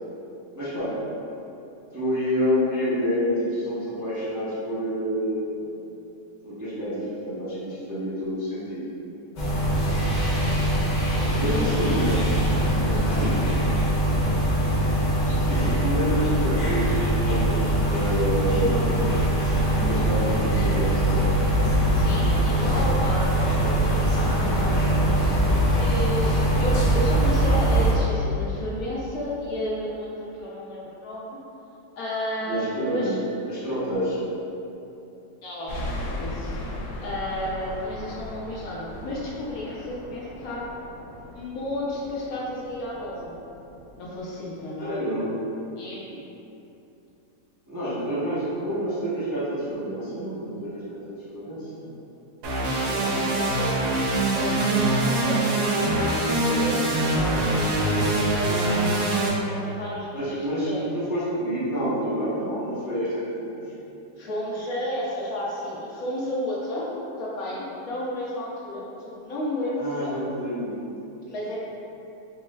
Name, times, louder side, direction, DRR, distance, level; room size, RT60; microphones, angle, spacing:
voice 1, 0.5-0.9 1.9-5.8 6.4-8.8 11.3-12.3 12.8-13.5 15.2-19.0 19.7-21.2 32.4-33.2 33.4-34.2 44.8-45.3 47.7-51.0 51.3-51.9 52.8-53.3 60.1-63.6 69.8-70.7, equal, 25° right, -12 dB, 0.4 m, -28 dB
sound 1, 9.4-27.9, right 1 dB, 50° left, 1.0 m, -22 dB
voice 2, 12.6-13.3 14.2-14.4 21.9-25.0 25.7-31.4 32.0-32.6 32.9-33.2 35.4-36.5 37.0-40.6 41.3-43.3 44.0-44.9 45.8-46.2 52.6-53.9 54.3-55.4 55.8-59.0 59.4-60.9 64.2-66.8 67.2-70.2 71.3-71.6, left 1 dB, 70° left, -6 dB, 1.0 m, -32 dB
sound 2, 35.7-44.2, left 1 dB, 90° left, 1.2 m, -38 dB
sound 3, 52.4-59.3, right 2 dB, 65° right, 0.9 m, -23 dB
4.3 x 3.1 x 2.2 m, 2.8 s
omnidirectional pair, 1.8 m